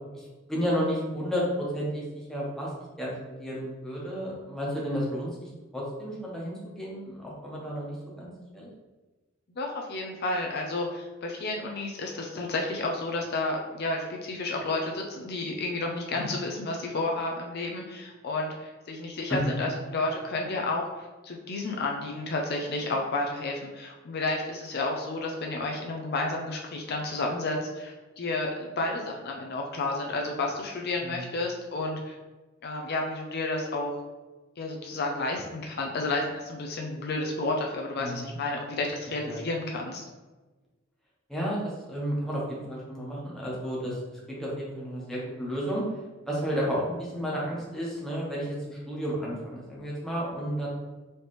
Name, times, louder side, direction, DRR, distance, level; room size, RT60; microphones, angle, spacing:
voice 1, 0.1-2.7 3.0-8.7 16.1-16.3 19.3-19.4 31.0-31.3 38.0-38.3 39.3-39.4 41.3-45.8 46.2-50.7, equal, ahead, -6 dB, 1.0 m, -32 dB
voice 2, 9.6-20.8 21.2-32.2 32.6-33.9 34.6-40.0, left 2 dB, 50° left, 1 dB, 0.5 m, -31 dB
4.2 x 3.2 x 3.2 m, 1.2 s
head